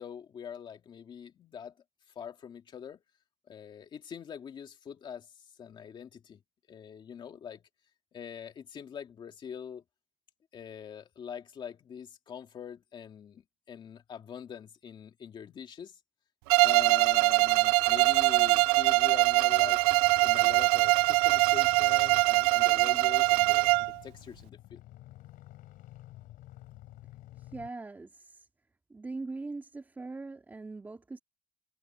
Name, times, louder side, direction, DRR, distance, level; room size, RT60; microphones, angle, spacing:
voice 1, 0.0-1.7 2.2-3.0 3.5-5.3 5.6-6.4 6.7-7.6 8.1-9.8 10.5-16.0 16.6-19.8 20.2-24.8, left 8 dB, 25° left, 2.2 m, -44 dB
Bowed string instrument, 16.5-24.0, right 26 dB, 75° right, 0.4 m, -23 dB
sound 1, 19.5-27.7, left 16 dB, 45° left, 4.4 m, -51 dB
voice 2, 27.4-28.5 28.9-31.2, right 3 dB, 10° right, 2.5 m, -41 dB
cardioid pair, 175°, 20 cm